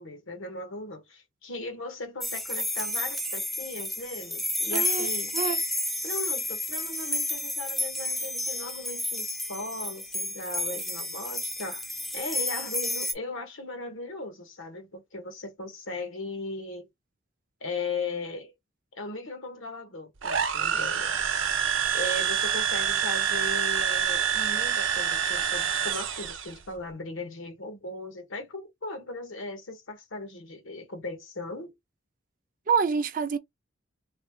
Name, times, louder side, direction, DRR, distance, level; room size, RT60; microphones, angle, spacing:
voice 1, 0.0-5.3 6.0-16.9 17.6-18.5 18.9-21.2 21.9-31.7, left 2 dB, 90° left, 1.4 m, -38 dB
sound 1, 2.2-13.1, left 1 dB, ahead, 0.6 m, -31 dB
voice 2, 4.7-5.1 5.3-5.6 32.7-33.4, right 6 dB, 45° right, 0.5 m, -26 dB
sound 2, 20.2-26.5, right 8 dB, 80° right, 0.7 m, -27 dB
4.0 x 3.1 x 2.3 m
head